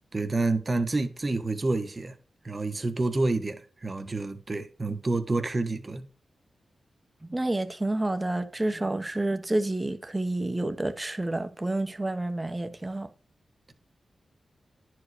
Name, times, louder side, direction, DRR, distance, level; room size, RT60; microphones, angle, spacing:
voice 1, 0.1-2.1 2.4-6.1, right 2 dB, 35° right, 1.3 m, -28 dB
voice 2, 7.2-13.1, right 2 dB, 20° right, 1.1 m, -29 dB
10.5 x 4.9 x 5.0 m
cardioid pair, 75°, 0 cm